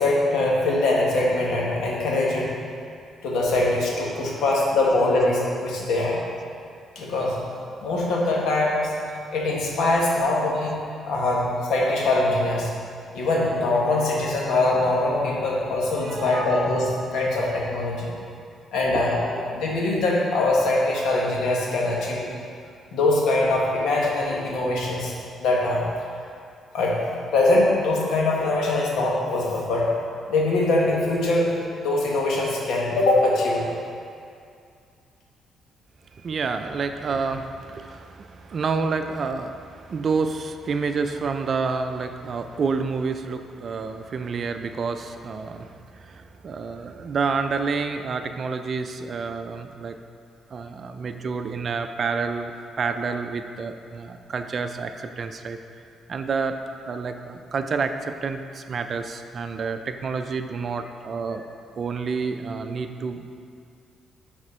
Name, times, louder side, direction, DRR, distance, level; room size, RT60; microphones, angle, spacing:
voice 1, 0.0-2.5 3.2-6.2 6.9-7.4 7.8-8.9 9.3-10.8 11.0-12.7 13.1-18.1 18.7-22.2 22.9-25.9 26.7-29.9 30.3-31.5 31.8-33.7, left 2 dB, 80° left, -3 dB, 1.5 m, -22 dB
voice 2, 16.0-16.5 18.9-19.0 36.1-50.0 50.5-55.6 56.1-56.5 56.9-61.4 61.8-63.4, right 4 dB, 50° right, 7 dB, 0.5 m, -29 dB
9.5 x 4.4 x 4.3 m, 2.4 s
cardioid pair, 90°, 0 cm